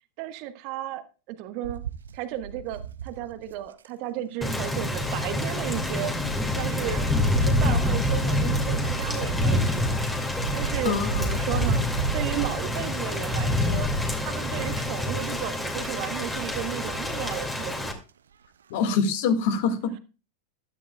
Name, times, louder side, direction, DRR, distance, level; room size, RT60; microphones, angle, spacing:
voice 1, 0.2-1.8 2.1-6.1 6.5-7.1 7.4-10.0 10.5-11.8 12.1-13.9 14.2-17.9, right 12 dB, 45° right, 10 dB, 1.2 m, -34 dB
sound 1, 1.6-3.9 5.1-13.7 14.1-14.4 14.7-15.2 16.0-16.9 17.4-17.5 17.7-17.8, right 8 dB, 65° right, 0.7 m, -34 dB
Thunder / Rain, 4.4-17.9, left 2 dB, 10° left, 2.3 m, -27 dB
voice 2, 10.8-11.2 18.7-20.0, left 5 dB, 50° left, 9 dB, 1.8 m, -25 dB
16.0 x 12.5 x 2.3 m, 0.33 s
figure-of-eight pair, 90°, 0 cm